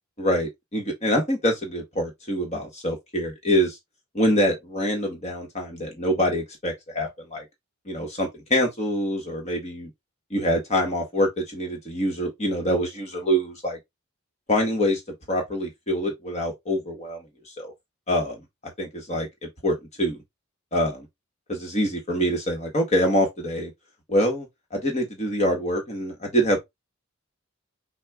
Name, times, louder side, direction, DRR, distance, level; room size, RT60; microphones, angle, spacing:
voice 1, 0.2-3.8 4.1-7.4 7.9-9.9 10.3-13.8 14.5-15.0 15.3-17.2 17.6-17.7 18.1-18.4 18.8-19.3 19.6-20.2 20.7-21.1 21.5-23.7 24.1-26.6, equal, 30° left, 1.3 m, -25 dB
6.3 x 2.3 x 3.6 m
head